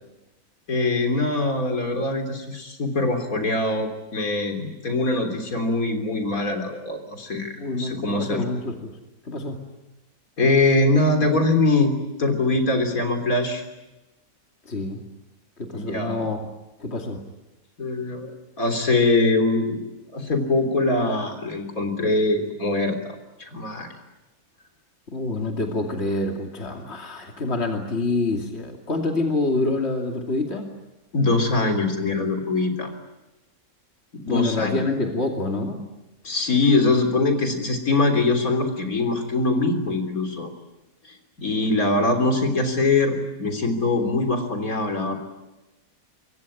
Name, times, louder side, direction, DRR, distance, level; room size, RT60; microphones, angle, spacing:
voice 1, 0.7-8.4 10.4-11.9 12.2-13.6 15.7-16.2 17.8-19.8 20.1-23.9 31.1-32.9 34.1-34.8 36.2-40.5 41.0-45.2, left 2 dB, 75° left, 5 dB, 4.0 m, -23 dB
voice 2, 7.6-8.9 9.2-9.6 14.6-15.0 15.6-16.4 16.8-17.2 25.1-30.7 34.3-35.8, left 2 dB, 45° left, 2 dB, 2.9 m, -26 dB
26.0 x 22.5 x 9.9 m, 1.0 s
omnidirectional pair, 1.5 m